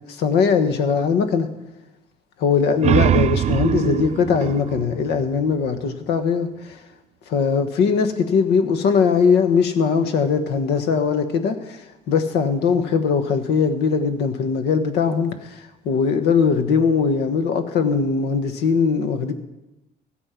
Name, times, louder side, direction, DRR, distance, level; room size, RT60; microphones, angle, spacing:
voice 1, 0.1-1.5 2.4-6.8 7.3-11.8 12.1-19.3, left 6 dB, 80° left, 9 dB, 1.3 m, -20 dB
sound 1, 2.6-6.0, right 10 dB, 40° right, 0.4 m, -23 dB
14.5 x 8.7 x 5.8 m, 0.97 s
cardioid pair, 110°, 17 cm